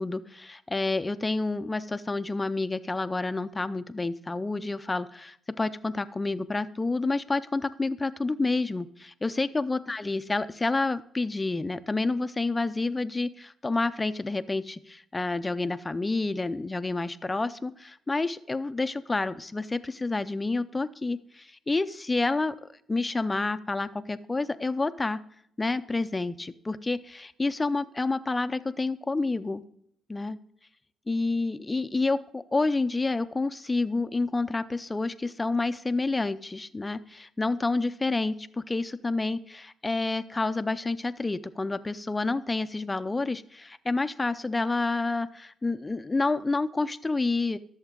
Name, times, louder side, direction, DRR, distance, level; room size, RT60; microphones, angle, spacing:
voice 1, 0.0-25.2 25.6-29.6 30.1-30.4 31.1-47.6, left 3 dB, 20° left, 12 dB, 0.5 m, -29 dB
14.0 x 7.2 x 3.8 m, 0.71 s
cardioid pair, 90°, 0 cm